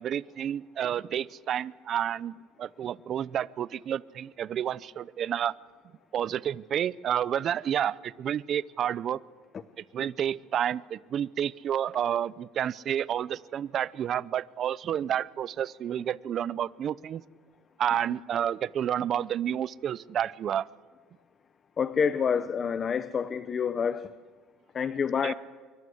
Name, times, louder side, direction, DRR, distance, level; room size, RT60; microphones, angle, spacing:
voice 1, 0.0-5.5 6.1-9.2 9.9-17.2 17.8-20.7 25.2-25.3, right 10 dB, 45° right, 20 dB, 0.6 m, -30 dB
voice 2, 21.8-24.1 24.7-25.3, left 6 dB, 30° left, 14 dB, 0.8 m, -28 dB
25.0 x 23.5 x 8.0 m, 1.5 s
cardioid pair, 120°, 0 cm